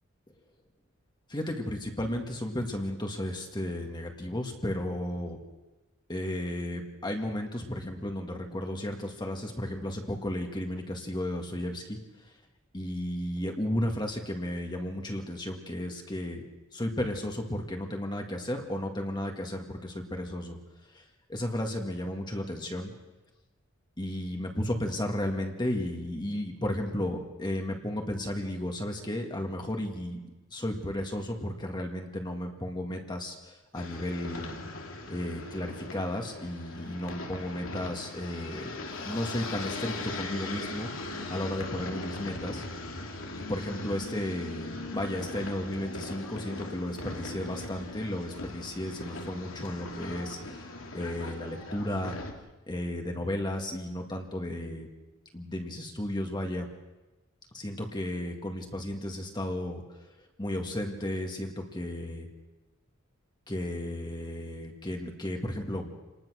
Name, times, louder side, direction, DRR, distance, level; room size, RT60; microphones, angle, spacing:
voice 1, 1.3-5.4 6.1-12.3 12.7-16.4 16.7-20.6 20.9-22.9 24.0-30.2 30.5-34.6 35.1-40.9 41.3-42.6 43.3-52.2 52.7-54.9 55.3-56.7 57.5-60.1 60.4-62.3 63.5-65.9, left 1 dB, 20° left, 2 dB, 2.0 m, -34 dB
sound 1, 33.7-52.3, left 2 dB, 75° left, 2.6 m, -39 dB
28.0 x 20.0 x 6.4 m, 1.1 s
head